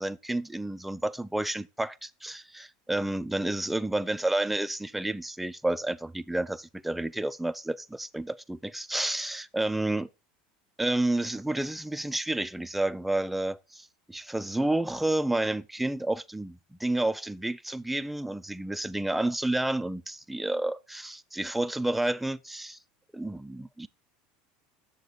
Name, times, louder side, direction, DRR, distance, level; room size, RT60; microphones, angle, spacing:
voice 1, 0.0-10.1 10.8-22.8 23.1-23.9, right 1 dB, 5° right, 0.3 m, -30 dB
7.2 x 6.7 x 3.9 m
supercardioid pair, 130°, 3 cm